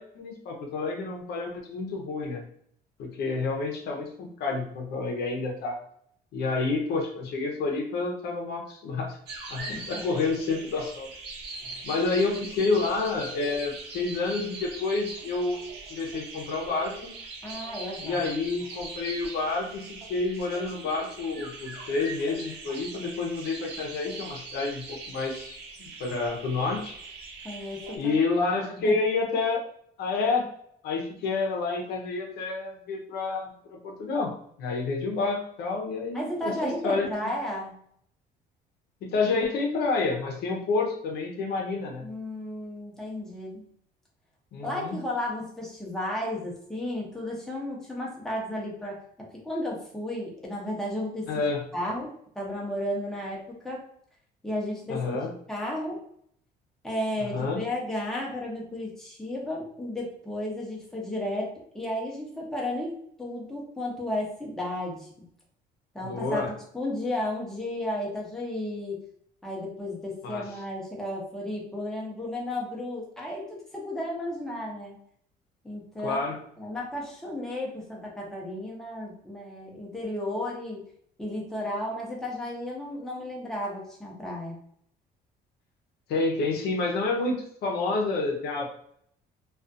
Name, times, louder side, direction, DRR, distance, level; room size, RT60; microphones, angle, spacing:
voice 1, 0.0-2.4 3.0-5.8 6.3-9.2 9.5-11.1 11.8-15.6 15.9-17.1 18.0-27.0 28.0-29.6 30.0-30.5 30.8-34.3 34.6-37.3 39.0-42.0 44.5-44.9 51.3-51.6 54.9-55.3 57.3-57.6 66.0-66.5 70.2-70.4 76.0-76.4 86.1-88.7, left 3 dB, 75° left, 1 dB, 0.6 m, -29 dB
sound 1, 9.3-28.0, right 3 dB, 80° right, 0.8 m, -41 dB
voice 2, 9.7-10.0 11.6-11.8 17.4-18.2 27.4-28.2 28.7-29.0 36.1-37.8 42.0-43.6 44.6-51.3 51.7-53.8 54.4-55.2 55.5-56.0 56.8-61.5 61.7-62.9 63.2-65.1 65.9-66.5 66.7-69.0 69.4-73.4 73.7-75.0 75.6-76.2 76.6-80.9 81.2-84.5, left 1 dB, 5° left, -3 dB, 0.7 m, -33 dB
2.4 x 2.3 x 2.5 m, 0.66 s
cardioid pair, 110°, 17 cm